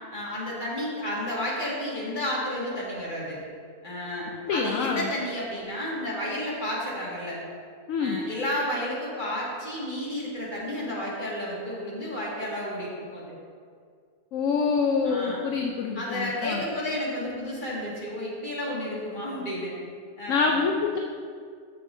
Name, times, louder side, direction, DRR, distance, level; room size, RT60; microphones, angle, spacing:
voice 1, 0.1-3.4 3.8-7.4 8.0-13.3 15.0-15.4 15.9-19.7 20.2-20.7, left 1 dB, 30° left, -6 dB, 2.1 m, -31 dB
voice 2, 4.4-5.1 7.9-8.2 14.3-16.6 20.3-21.0, left 5 dB, 65° left, 2 dB, 0.9 m, -26 dB
13.5 x 6.3 x 2.6 m, 2.1 s
omnidirectional pair, 1.6 m